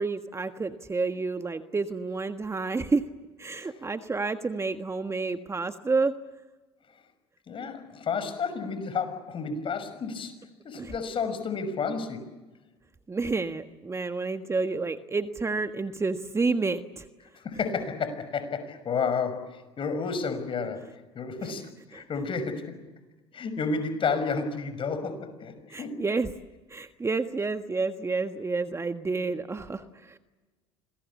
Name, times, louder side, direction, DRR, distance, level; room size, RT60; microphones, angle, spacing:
voice 1, 0.0-3.0 3.4-6.1 10.8-10.9 13.1-17.1 21.9-22.0 25.7-26.3 26.7-30.2, right 3 dB, 20° right, 8 dB, 1.5 m, -29 dB
voice 2, 7.5-10.3 10.6-12.3 17.4-22.7 23.3-26.0, left 5 dB, 40° left, 10 dB, 6.0 m, -31 dB
27.0 x 21.5 x 8.5 m, 1.2 s
hypercardioid pair, 65°, 13 cm